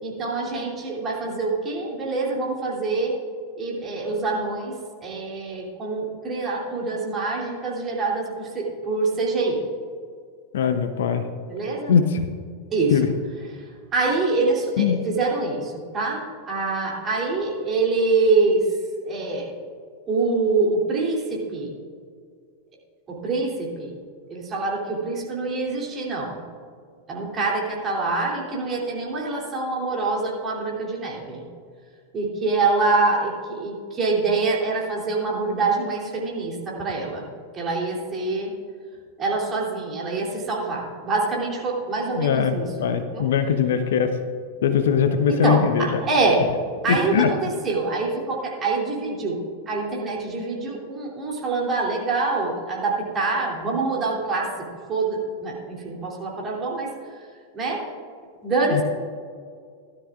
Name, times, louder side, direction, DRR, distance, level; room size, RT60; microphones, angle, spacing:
voice 1, 0.0-3.1 3.6-4.8 5.0-9.6 11.5-11.9 12.7-12.9 13.9-18.7 19.0-19.5 20.1-21.7 23.1-23.9 24.3-26.4 27.1-31.4 32.1-37.3 37.5-38.5 39.2-42.7 43.1-43.3 45.4-46.5 46.8-49.4 49.7-56.9 57.5-57.8 58.4-58.8, right 3 dB, 25° right, -3 dB, 3.1 m, -25 dB
voice 2, 10.5-11.2 11.9-12.2 12.9-13.1 14.8-15.0 42.1-44.1 44.6-46.0 46.9-47.3 58.7-58.8, left 7 dB, 60° left, 9 dB, 0.7 m, -21 dB
17.0 x 12.0 x 2.5 m, 2.1 s
figure-of-eight pair, 90°, 0 cm